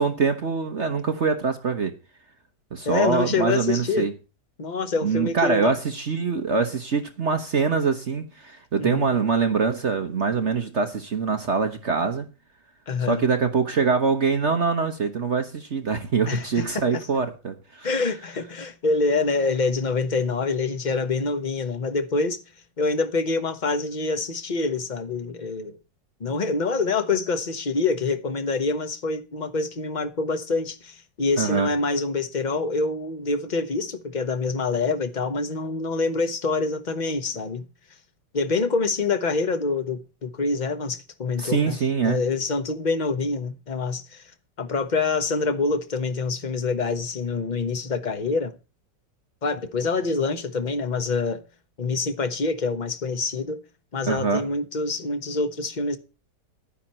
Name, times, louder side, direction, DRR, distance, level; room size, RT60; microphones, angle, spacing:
voice 1, 0.0-2.0 2.7-4.1 5.0-12.3 13.1-17.9 31.4-31.7 41.4-42.2 54.0-54.4, right 5 dB, 45° right, 1.3 m, -24 dB
voice 2, 2.8-4.1 4.6-5.8 8.8-9.1 12.9-13.2 16.3-17.0 17.8-22.4 22.8-25.8 26.2-37.7 38.3-41.8 42.0-44.3 44.6-48.5 49.4-51.4 51.8-53.6 53.9-56.0, left 3 dB, 30° left, 1.1 m, -26 dB
11.0 x 10.0 x 4.3 m
omnidirectional pair, 1.9 m